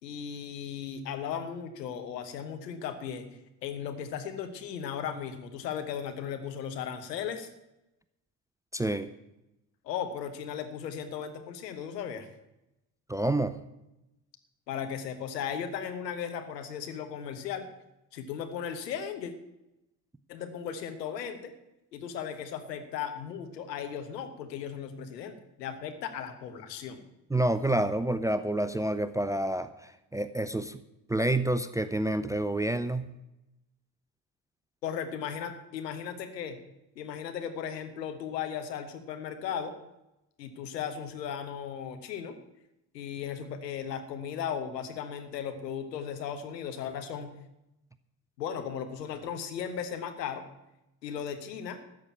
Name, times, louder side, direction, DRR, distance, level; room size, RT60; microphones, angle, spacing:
voice 1, 0.0-7.5 9.8-12.3 14.7-17.7 18.1-19.3 20.3-21.5 21.9-27.0 34.8-36.6 36.9-39.7 40.4-42.4 42.9-47.3 48.4-50.4 51.0-51.8, left 8 dB, 75° left, 7 dB, 1.4 m, -36 dB
voice 2, 8.7-9.1 13.1-13.6 27.3-30.8 31.1-33.1, right 1 dB, 5° right, 12 dB, 0.5 m, -28 dB
13.5 x 6.5 x 8.7 m, 0.90 s
figure-of-eight pair, 50°, 50 cm